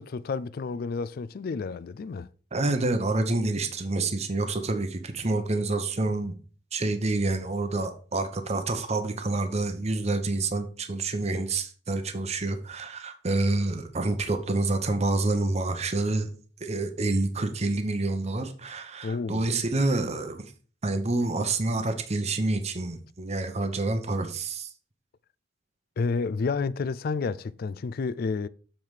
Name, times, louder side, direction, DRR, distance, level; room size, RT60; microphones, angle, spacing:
voice 1, 0.0-2.3 19.0-19.5 26.0-28.5, left 4 dB, 55° left, 0.4 m, -30 dB
voice 2, 2.5-6.4 6.7-16.3 16.6-20.5 20.8-24.7, right 2 dB, 35° right, 0.8 m, -28 dB
7.5 x 4.6 x 4.9 m
head